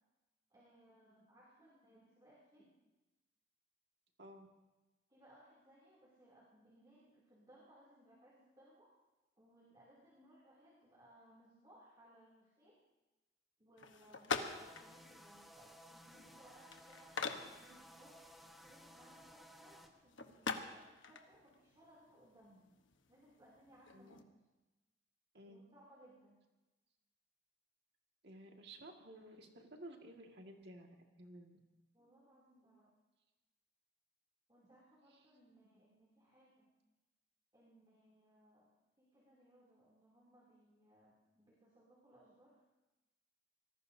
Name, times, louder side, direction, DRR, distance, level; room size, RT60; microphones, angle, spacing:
voice 1, 0.5-2.7 5.1-8.9 9.4-12.8 13.6-22.7 23.1-24.3 25.5-26.4 31.9-32.9 34.5-36.7 37.5-38.7 39.0-42.6, right 1 dB, 25° right, -6 dB, 2.9 m, -65 dB
sound 1, 13.8-24.2, left 4 dB, 90° left, 1.2 m, -46 dB
sound 2, 14.4-19.9, equal, ahead, 1.1 m, -59 dB
voice 2, 28.2-31.6, right 1 dB, 60° right, 2 dB, 2.0 m, -54 dB
25.0 x 19.0 x 2.8 m, 1.1 s
head